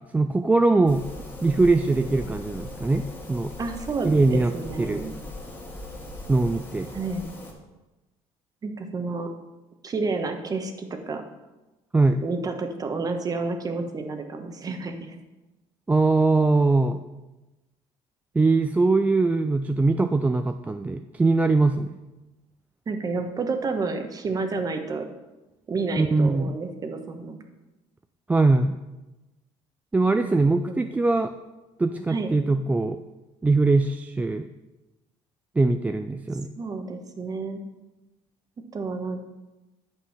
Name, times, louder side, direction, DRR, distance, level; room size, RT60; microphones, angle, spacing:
voice 1, 0.1-1.0 1.4-3.5 4.0-4.5 4.8-5.0 6.3-6.9 11.9-12.2 15.9-17.0 18.3-22.0 26.0-26.5 28.3-28.8 29.9-31.3 31.8-33.0 33.4-34.5 35.6-36.5, right 3 dB, 15° right, 7 dB, 0.3 m, -21 dB
sound 1, 0.9-7.5, left 2 dB, 15° left, 2.1 m, -39 dB
voice 2, 3.6-5.2 6.9-7.3 8.6-9.3 9.8-11.2 12.2-15.2 22.9-25.1 25.7-27.4 30.1-30.9 32.1-32.3 36.6-37.6 38.7-39.3, right 3 dB, 30° right, 6 dB, 1.1 m, -30 dB
8.8 x 5.4 x 5.6 m, 1.1 s
cardioid pair, 105°, 12 cm